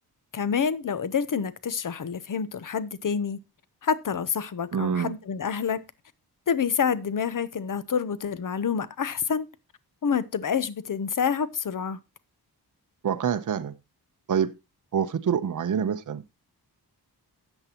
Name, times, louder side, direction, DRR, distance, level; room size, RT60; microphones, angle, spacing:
voice 1, 0.3-3.4 3.8-5.8 6.5-9.5 10.0-12.0, left 7 dB, 55° left, 0.8 m, -27 dB
voice 2, 4.7-5.1 13.0-13.8 14.3-14.5 14.9-16.3, right 7 dB, 50° right, 0.8 m, -26 dB
13.0 x 8.0 x 2.9 m
wide cardioid pair, 90°, 39 cm